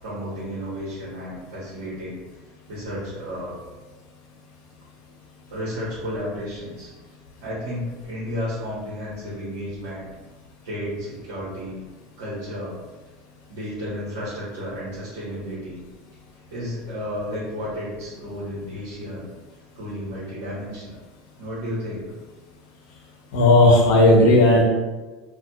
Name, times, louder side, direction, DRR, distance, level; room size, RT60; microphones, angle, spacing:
voice 1, 0.0-2.2 2.7-3.5 5.5-6.9 7.4-10.1 10.6-11.8 12.2-12.8 13.5-15.8 16.5-19.3 19.7-21.0 21.4-22.1, equal, 85° right, -8 dB, 1.2 m, -32 dB
voice 2, 23.3-24.6, left 2 dB, 70° left, -2 dB, 0.7 m, -14 dB
4.3 x 2.3 x 2.3 m, 1.2 s
supercardioid pair, 155°, 0 cm